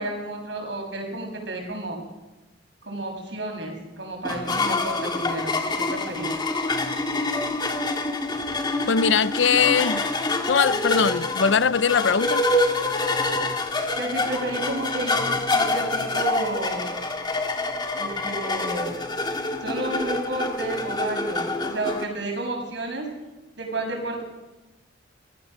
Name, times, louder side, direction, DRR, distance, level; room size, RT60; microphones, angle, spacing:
voice 1, 0.0-2.0 2.8-6.3 14.0-17.0 17.9-18.9 19.6-23.1 23.6-24.2, right 2 dB, 70° right, 6.6 m, -31 dB
sound 1, 4.2-22.0, left 2 dB, 25° left, 1.8 m, -26 dB
voice 2, 8.9-10.1 10.5-12.4, left 6 dB, 75° left, 0.6 m, -21 dB
26.0 x 15.5 x 6.5 m
head